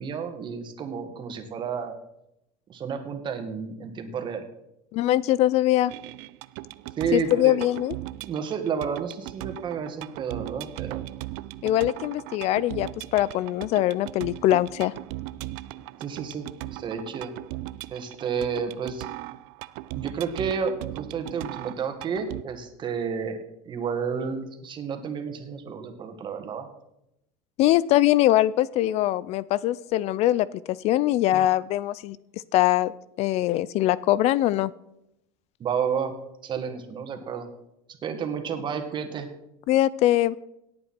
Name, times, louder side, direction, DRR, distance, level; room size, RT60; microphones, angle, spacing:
voice 1, 0.0-1.9 2.7-4.5 7.0-7.6 8.2-11.0 16.0-17.3 17.9-19.0 19.9-23.4 23.7-26.7 35.6-36.1 36.4-37.5 38.0-39.3, right 6 dB, 35° right, 6 dB, 2.0 m, -31 dB
voice 2, 4.9-5.9 7.1-7.9 11.6-14.9 27.6-32.2 32.5-32.9 33.2-34.7 39.7-40.4, left 14 dB, 55° left, 20 dB, 0.4 m, -22 dB
sound 1, 5.9-22.4, right 17 dB, 75° right, 0.5 m, -38 dB
17.5 x 8.6 x 4.4 m, 0.84 s
supercardioid pair, 120°, 13 cm